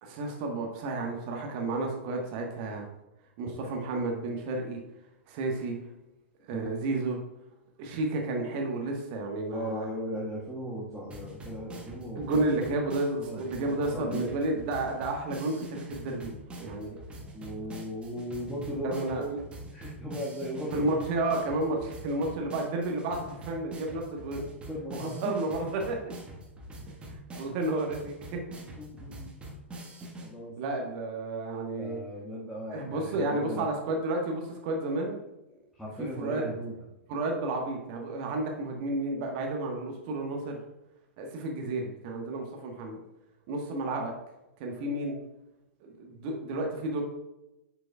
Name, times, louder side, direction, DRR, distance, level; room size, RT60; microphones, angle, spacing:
voice 1, 0.0-2.9 3.4-4.8 5.3-5.8 6.5-7.2 7.8-9.9 12.2-17.0 18.8-19.2 20.7-24.4 24.9-26.1 26.9-27.0 27.4-28.4 30.6-32.0 32.7-35.2 36.0-36.4 37.1-40.6 41.2-43.0 43.5-44.1 44.6-45.2 45.8-47.0, right 2 dB, 45° right, 2 dB, 1.3 m, -31 dB
voice 2, 9.5-12.3 13.2-14.3 17.3-19.4 19.7-20.9 22.5-22.6 24.7-25.3 28.8-29.3 30.2-30.5 31.8-33.7 35.8-36.7, equal, ahead, -9 dB, 1.6 m, -37 dB
sound 1, 11.1-30.3, right 1 dB, 15° right, 1.4 m, -44 dB
8.0 x 6.7 x 2.3 m, 0.94 s
figure-of-eight pair, 100°, 7 cm